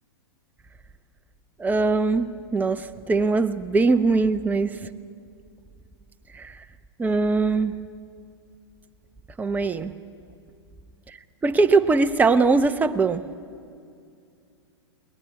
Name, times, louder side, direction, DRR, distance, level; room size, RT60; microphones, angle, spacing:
voice 1, 1.6-4.8 6.4-6.5 7.0-7.8 9.4-9.9 11.4-13.2, right 3 dB, 10° right, 0.8 m, -21 dB
21.0 x 19.0 x 9.5 m
hypercardioid pair, 115°, 14 cm